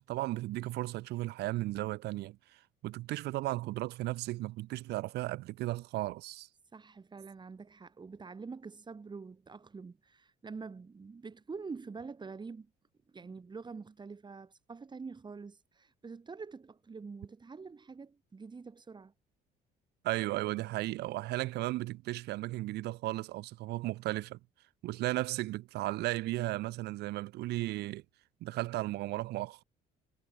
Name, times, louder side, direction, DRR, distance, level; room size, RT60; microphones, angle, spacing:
voice 1, 0.0-6.5 20.0-24.4 24.8-28.0 28.4-29.6, right 18 dB, 80° right, 1.2 m, -35 dB
voice 2, 6.7-12.7 13.1-19.1, right 4 dB, 25° right, 7.7 m, -46 dB
cardioid pair, 110°, 17 cm